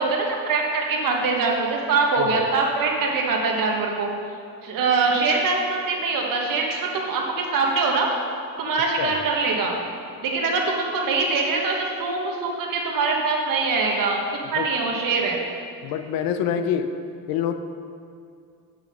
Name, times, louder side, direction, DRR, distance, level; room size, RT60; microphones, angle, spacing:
voice 1, 0.0-4.1 4.6-8.1 8.6-9.8 10.2-14.2 14.5-15.4, right 4 dB, 65° right, 0 dB, 1.5 m, -23 dB
voice 2, 15.8-16.9 17.3-17.5, left 9 dB, 80° left, 8 dB, 0.7 m, -25 dB
8.7 x 6.2 x 5.2 m, 2.4 s
cardioid pair, 140°, 35 cm